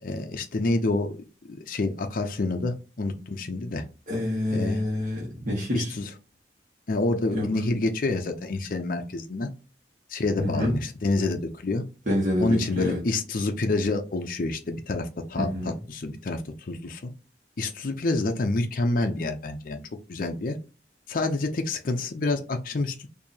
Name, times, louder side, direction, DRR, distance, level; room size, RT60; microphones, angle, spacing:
voice 1, 0.0-1.1 1.5-3.8 4.5-4.8 5.7-6.1 6.9-9.5 10.1-11.8 12.4-17.0 17.6-19.8 20.1-20.6 21.1-23.1, left 2 dB, 50° left, 5 dB, 0.5 m, -28 dB
voice 2, 4.1-5.9 7.3-7.5 10.4-10.7 12.1-13.0 15.4-15.7, left 1 dB, 45° right, -4 dB, 1.3 m, -27 dB
4.5 x 2.7 x 2.7 m, 0.33 s
head